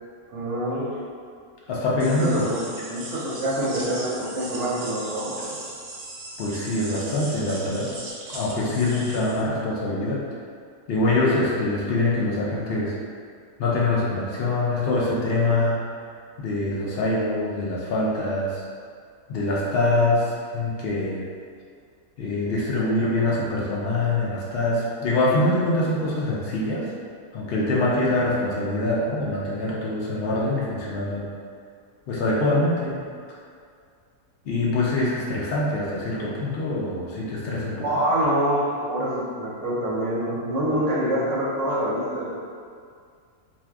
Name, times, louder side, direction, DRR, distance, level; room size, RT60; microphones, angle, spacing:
voice 1, 0.3-0.9 2.2-2.6 2.9-5.6 37.8-42.3, right 1 dB, 65° right, -6 dB, 0.9 m, -26 dB
voice 2, 1.7-2.4 6.4-7.9 8.3-10.2 10.9-12.9 13.6-15.8 16.4-18.6 19.3-21.2 22.2-26.8 27.3-31.3 32.1-33.0 34.5-37.9, left 2 dB, 70° left, -5 dB, 0.5 m, -24 dB
sound 1, 2.0-9.4, right 2 dB, 85° right, 1.1 m, -38 dB
2.6 x 2.2 x 3.3 m, 2.2 s
omnidirectional pair, 1.5 m